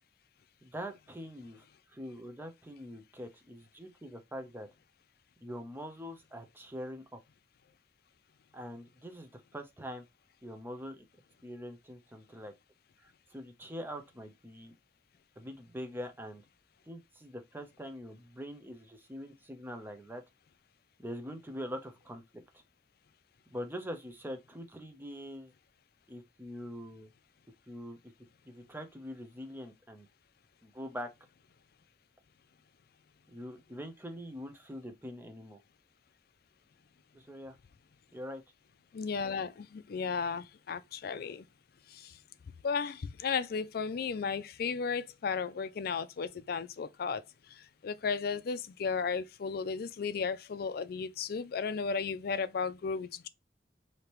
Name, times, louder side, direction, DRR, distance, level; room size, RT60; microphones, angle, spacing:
voice 1, 0.6-1.6 1.9-4.7 5.4-7.2 8.5-10.0 10.4-11.0 11.4-12.5 13.0-14.7 15.4-16.4 16.9-20.2 21.0-22.2 23.5-25.5 26.1-27.1 27.7-28.0 28.5-30.1 30.6-31.1 33.3-35.6 37.1-37.6 38.1-38.4, equal, 10° right, 0.8 m, -43 dB
voice 2, 38.9-41.4 42.6-47.2 47.8-53.3, left 5 dB, 60° left, 0.4 m, -34 dB
5.0 x 2.9 x 3.1 m
head